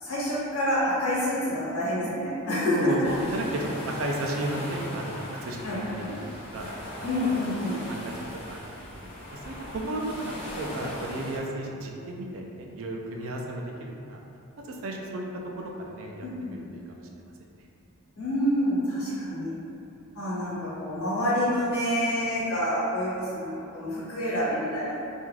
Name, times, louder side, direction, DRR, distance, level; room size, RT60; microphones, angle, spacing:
voice 1, 0.0-2.9 5.6-6.2 7.0-7.8 16.2-16.7 18.2-19.5 20.1-24.9, equal, 75° left, -9 dB, 1.0 m, -28 dB
sound 1, 3.0-11.4, left 1 dB, 30° left, 0.5 m, -39 dB
voice 2, 3.3-6.2 6.5-6.7 7.9-14.2 14.6-15.2 15.6-17.1, right 1 dB, 65° right, 0 dB, 0.3 m, -34 dB
2.4 x 2.2 x 3.1 m, 2.7 s
head